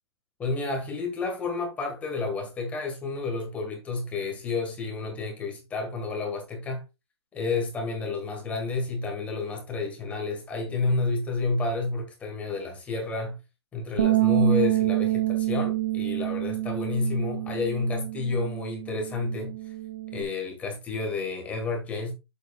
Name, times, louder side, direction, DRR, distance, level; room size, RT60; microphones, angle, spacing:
voice 1, 0.4-6.8 7.3-13.4 13.7-19.5 20.1-22.1, left 3 dB, 10° left, 1.8 m, -30 dB
Bass guitar, 14.0-20.2, right 16 dB, 50° right, 1.3 m, -27 dB
7.9 x 7.1 x 2.4 m
hypercardioid pair, 160°, 14 cm